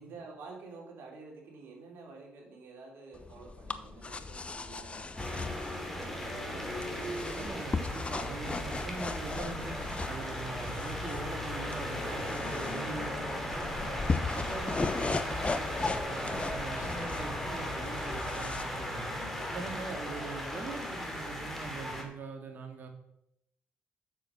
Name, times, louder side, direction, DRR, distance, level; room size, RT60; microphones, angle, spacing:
voice 1, 0.0-7.3 12.5-12.9, right 3 dB, 65° right, -1 dB, 3.7 m, -50 dB
sound 1, 3.1-18.6, left 3 dB, 30° left, 0.9 m, -38 dB
sound 2, 5.2-22.0, left 1 dB, 5° left, 2.9 m, -36 dB
voice 2, 7.4-14.0 14.3-19.1 19.5-22.9, right 4 dB, 50° right, 3 dB, 2.4 m, -42 dB
7.5 x 6.9 x 6.3 m, 0.81 s
supercardioid pair, 60°, 4 cm